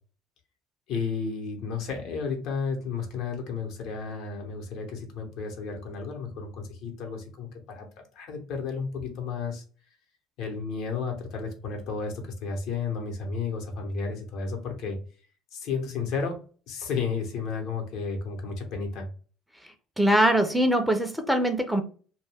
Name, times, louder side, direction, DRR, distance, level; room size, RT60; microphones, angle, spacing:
voice 1, 0.9-7.5 7.8-7.9 8.1-9.6 10.4-15.0 15.5-16.4 16.7-19.1, left 5 dB, 70° left, 3 dB, 0.8 m, -32 dB
voice 2, 20.0-21.8, right 1 dB, ahead, 6 dB, 0.5 m, -22 dB
2.2 x 2.1 x 3.3 m, 0.39 s
supercardioid pair, 85°, 0 cm